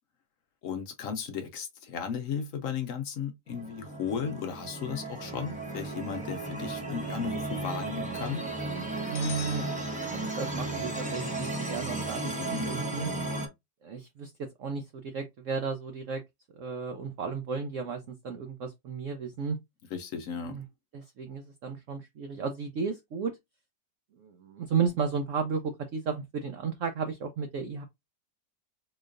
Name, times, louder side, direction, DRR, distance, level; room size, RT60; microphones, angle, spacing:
voice 1, 0.6-8.4 12.2-12.7 19.9-20.6, left 7 dB, 65° left, 0.8 m, -35 dB
sound 1, 3.5-13.5, right 2 dB, 10° right, 0.4 m, -34 dB
sound 2, 9.1-10.7, left 10 dB, 80° left, 1.2 m, -44 dB
voice 2, 9.1-9.6 10.4-12.2 12.7-13.1 13.8-16.2 16.6-19.6 20.5-20.6 20.9-23.3 24.2-27.8, right 5 dB, 75° right, 0.7 m, -33 dB
3.8 x 3.1 x 2.5 m
omnidirectional pair, 2.0 m